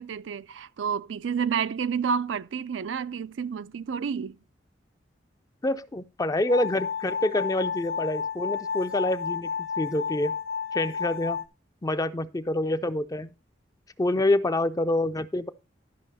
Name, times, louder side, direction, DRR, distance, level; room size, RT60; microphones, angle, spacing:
voice 1, 0.0-4.4, right 6 dB, 80° right, 0.4 m, -30 dB
voice 2, 5.6-10.3 10.7-11.4 11.8-13.3 14.0-15.5, left 1 dB, 20° left, 0.5 m, -27 dB
sound 1, 6.5-11.4, left 6 dB, 70° left, 1.1 m, -31 dB
12.0 x 5.6 x 4.0 m
head